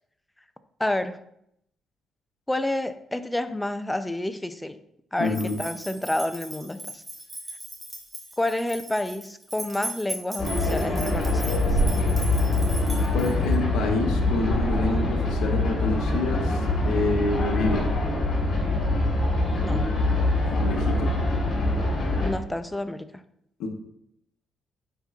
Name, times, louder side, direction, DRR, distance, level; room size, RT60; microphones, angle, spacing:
voice 1, 0.8-1.2 2.5-4.8 5.1-7.0 8.4-11.8 19.6-19.9 22.2-23.1, left 1 dB, 10° left, 11 dB, 0.4 m, -29 dB
voice 2, 5.2-5.6 13.1-17.9 20.6-21.2 23.6-23.7, left 3 dB, 85° left, 2 dB, 0.8 m, -28 dB
sound 1, 5.2-13.6, right 1 dB, 15° right, 1.7 m, -39 dB
sound 2, 10.4-22.3, left 2 dB, 55° left, 2.6 m, -24 dB
9.5 x 4.4 x 2.4 m, 0.75 s
cardioid pair, 90°, 0 cm